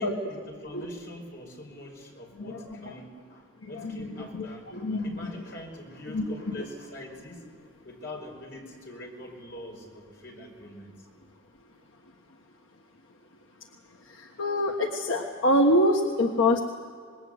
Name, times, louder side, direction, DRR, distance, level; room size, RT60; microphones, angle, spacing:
voice 1, 0.0-7.5 7.8-11.1, left 1 dB, 55° left, 0 dB, 5.7 m, -43 dB
voice 2, 2.4-3.0 3.6-5.3 6.1-6.2 14.0-16.6, left 1 dB, 85° left, 1 dB, 1.5 m, -26 dB
26.5 x 20.5 x 8.1 m, 2.1 s
head